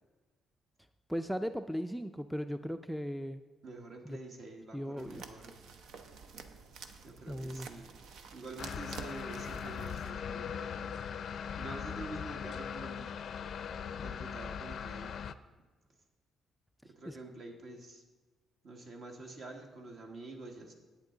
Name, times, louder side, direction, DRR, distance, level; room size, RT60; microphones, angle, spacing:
voice 1, 1.1-3.4 4.0-4.2 4.7-5.2 7.3-7.7 17.1-17.2, equal, ahead, 10 dB, 0.4 m, -37 dB
voice 2, 3.6-5.5 7.0-7.9 8.3-11.0 11.6-13.1 14.0-15.1 16.8-18.0 18.6-20.7, right 2 dB, 60° right, 2 dB, 1.7 m, -47 dB
sound 1, 5.0-10.1, right 5 dB, 80° right, 0.7 m, -49 dB
sound 2, 8.6-15.3, left 7 dB, 60° left, 0.4 m, -40 dB
11.0 x 8.6 x 3.9 m, 1.2 s
cardioid pair, 90°, 0 cm